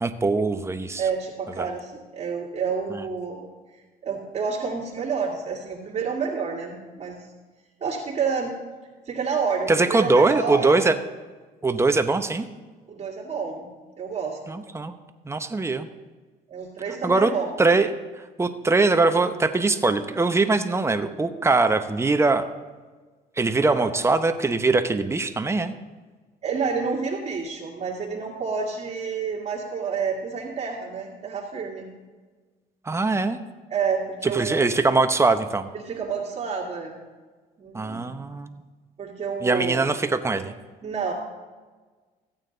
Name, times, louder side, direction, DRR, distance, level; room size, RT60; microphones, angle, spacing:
voice 1, 0.0-1.0 1.6-1.7 2.9-3.0 9.7-11.0 11.6-12.5 14.5-14.9 15.2-15.9 17.0-17.3 17.6-22.4 23.4-25.7 32.9-33.4 34.2-35.7 37.7-38.6 39.4-40.5, right 3 dB, 15° right, 8 dB, 0.8 m, -22 dB
voice 2, 1.0-3.5 4.0-7.3 7.8-8.5 9.1-10.9 12.9-13.7 14.0-14.5 16.5-17.5 23.7-23.9 26.4-31.9 33.7-34.7 35.8-37.0 37.6-38.0 39.0-39.9 40.8-41.1, right 5 dB, 40° right, -5 dB, 2.0 m, -29 dB
14.5 x 8.9 x 3.9 m, 1.3 s
cardioid pair, 110°, 17 cm